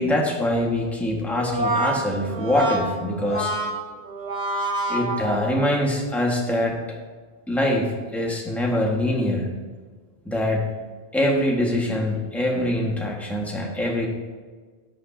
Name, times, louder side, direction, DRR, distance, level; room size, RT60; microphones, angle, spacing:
voice 1, 0.0-3.5 4.9-6.8 7.5-9.5 10.2-10.7 11.1-14.1, left 1 dB, ahead, -2 dB, 1.6 m, -24 dB
Brass instrument, 1.3-5.8, right 2 dB, 40° right, 1.2 m, -27 dB
13.0 x 8.8 x 2.8 m, 1.4 s
omnidirectional pair, 1.1 m